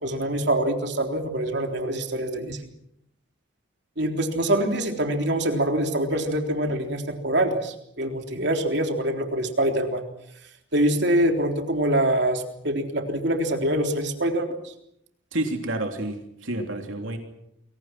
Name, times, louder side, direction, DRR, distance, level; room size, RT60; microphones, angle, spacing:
voice 1, 0.0-2.6 4.0-10.0 10.7-14.7, right 1 dB, 55° right, 3 dB, 3.7 m, -25 dB
voice 2, 15.3-17.2, right 1 dB, 70° right, 3 dB, 3.3 m, -29 dB
30.0 x 23.0 x 6.1 m, 0.76 s
head